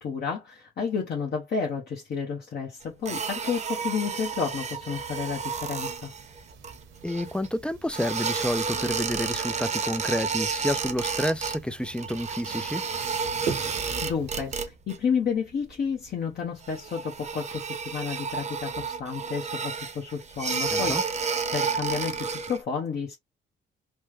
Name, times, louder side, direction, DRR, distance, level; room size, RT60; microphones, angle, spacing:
voice 1, 0.0-6.1 13.6-21.2 21.5-23.2, left 6 dB, 55° left, 1.0 m, -31 dB
sound 1, 3.1-7.5 7.9-11.6 11.8-15.0 15.3-15.7 16.1-16.2 16.6-22.6, right 5 dB, 35° right, 0.8 m, -31 dB
sound 2, 4.7-14.5, right 5 dB, 75° right, 1.1 m, -42 dB
voice 2, 7.0-12.8 20.7-21.0, left 1 dB, 5° left, 0.4 m, -29 dB
3.3 x 2.1 x 3.2 m
cardioid pair, 90°, 20 cm